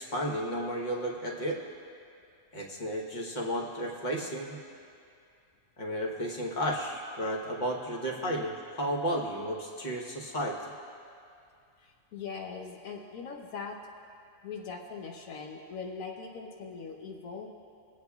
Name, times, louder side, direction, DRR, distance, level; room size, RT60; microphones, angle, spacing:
voice 1, 0.0-1.6 2.5-4.6 5.8-10.7, equal, 35° left, -2 dB, 1.2 m, -33 dB
voice 2, 11.8-13.8 14.4-17.5, left 5 dB, 85° left, 2 dB, 1.2 m, -41 dB
23.0 x 8.3 x 2.3 m, 2.5 s
omnidirectional pair, 1.4 m